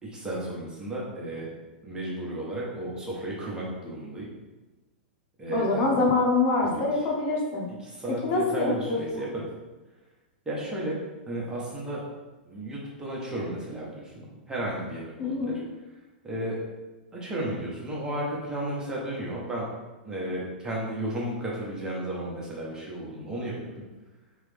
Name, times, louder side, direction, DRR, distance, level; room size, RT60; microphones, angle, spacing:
voice 1, 0.0-1.5 1.8-4.3 5.4-5.9 6.6-7.0 7.8-9.5 10.4-11.0 11.3-12.0 12.4-15.6 16.2-16.6 17.1-19.6 20.0-23.8, right 1 dB, 15° right, -5 dB, 1.2 m, -33 dB
voice 2, 5.5-7.7 8.2-9.0 15.2-15.5, left 3 dB, 45° left, -2 dB, 1.0 m, -25 dB
3.6 x 3.1 x 3.4 m, 1.2 s
hypercardioid pair, 105°, 5 cm